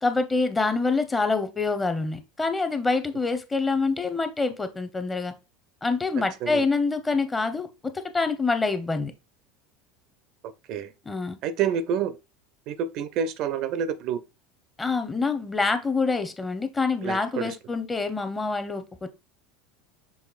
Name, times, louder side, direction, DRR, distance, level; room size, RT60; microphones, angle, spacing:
voice 1, 0.0-5.3 5.8-9.1 11.1-11.4 14.8-19.1, left 3 dB, 15° left, 0.8 m, -26 dB
voice 2, 6.2-6.7 10.7-10.9 11.4-12.2 12.7-14.2 17.0-17.6, right 7 dB, 50° right, 0.5 m, -28 dB
6.3 x 3.4 x 2.4 m
figure-of-eight pair, 75°, 0 cm